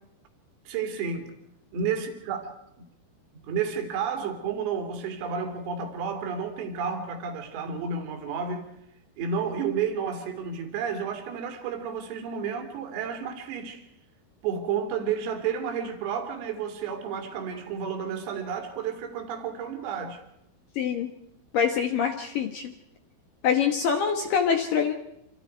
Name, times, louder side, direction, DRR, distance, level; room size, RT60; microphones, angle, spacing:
voice 1, 0.7-1.3 1.7-2.5 3.5-8.7 9.2-13.8 14.4-20.2, right 6 dB, 75° right, 5.3 m, -31 dB
voice 2, 20.8-21.1 21.5-22.7 23.4-24.9, left 7 dB, 75° left, 2.0 m, -25 dB
27.5 x 27.5 x 4.6 m
omnidirectional pair, 6.0 m